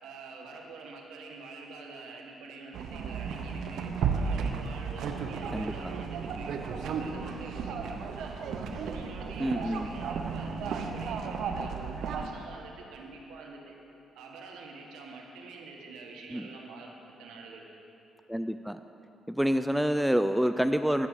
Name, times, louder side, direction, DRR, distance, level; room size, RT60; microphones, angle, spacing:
voice 1, 0.0-8.3 8.7-13.7 14.1-17.7, right 3 dB, 90° right, 0 dB, 1.6 m, -46 dB
sound 1, 2.7-12.3, right 5 dB, 70° right, 0.8 m, -34 dB
voice 2, 5.5-5.9 9.4-9.9 16.3-16.5 18.3-18.8 19.3-21.1, equal, 5° right, 10 dB, 0.3 m, -27 dB
11.5 x 6.1 x 8.1 m, 2.9 s
cardioid pair, 90°, 0 cm